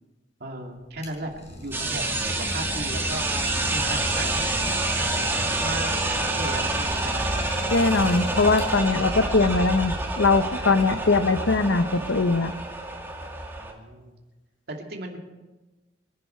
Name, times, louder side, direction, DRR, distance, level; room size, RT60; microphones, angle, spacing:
voice 1, 0.4-7.3 13.6-14.2 14.7-15.2, right 1 dB, 55° right, 1 dB, 2.5 m, -36 dB
Idling, 0.7-9.1, left 1 dB, 35° left, 5.1 m, -36 dB
sound 1, 1.7-13.7, right 2 dB, 10° right, 2.0 m, -28 dB
voice 2, 7.7-12.5, left 3 dB, 75° left, 11 dB, 0.9 m, -21 dB
28.0 x 11.5 x 4.5 m, 1.2 s
head